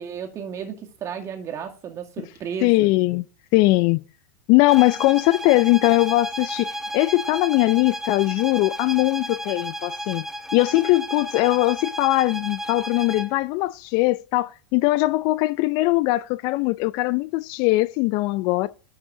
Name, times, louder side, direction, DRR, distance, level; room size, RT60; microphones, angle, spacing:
voice 1, 0.0-2.9 3.7-3.8, right 7 dB, 35° right, 2.2 m, -34 dB
voice 2, 2.6-3.2 3.5-4.0 4.5-10.2 10.5-18.7, left 20 dB, 50° left, 0.4 m, -20 dB
sound 1, 4.7-13.4, equal, 5° right, 0.8 m, -33 dB
12.0 x 5.5 x 3.8 m
hypercardioid pair, 105°, 9 cm